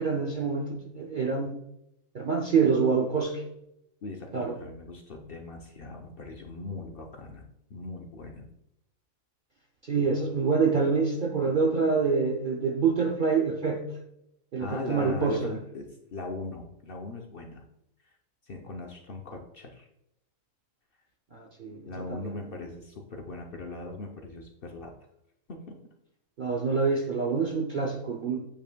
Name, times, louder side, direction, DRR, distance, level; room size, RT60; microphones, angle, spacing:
voice 1, 0.0-1.6 2.1-3.4 4.3-4.6 9.8-13.9 14.5-15.5 21.3-22.4 26.4-28.4, right 5 dB, 50° right, 2 dB, 0.6 m, -26 dB
voice 2, 4.0-8.5 14.6-17.6 18.5-19.9 21.8-24.9 25.5-25.8, left 2 dB, 50° left, 2 dB, 0.7 m, -40 dB
8.6 x 5.5 x 2.2 m, 0.80 s
omnidirectional pair, 1.5 m